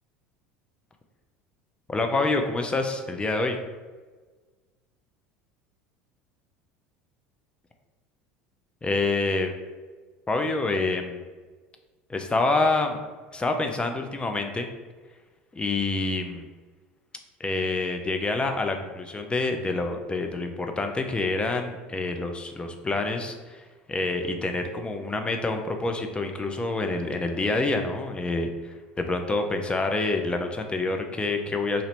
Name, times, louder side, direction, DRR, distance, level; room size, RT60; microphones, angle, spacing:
voice 1, 1.9-3.6 8.8-9.5 10.3-11.2 12.1-13.0 13.3-14.7 15.5-16.5 17.4-23.6 23.9-31.8, left 3 dB, 15° left, 5 dB, 0.4 m, -27 dB
2.7 x 2.5 x 3.1 m, 1.4 s
hypercardioid pair, 80°, 6 cm